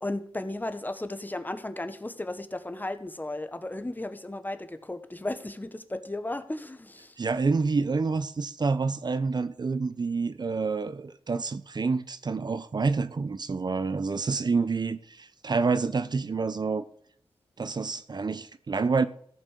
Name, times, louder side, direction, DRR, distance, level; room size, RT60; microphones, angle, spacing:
voice 1, 0.0-7.2, left 2 dB, 20° left, 1.4 m, -35 dB
voice 2, 7.2-16.8 17.6-19.1, right 4 dB, 45° right, 0.7 m, -28 dB
14.5 x 6.1 x 6.7 m
cardioid pair, 55°, 10 cm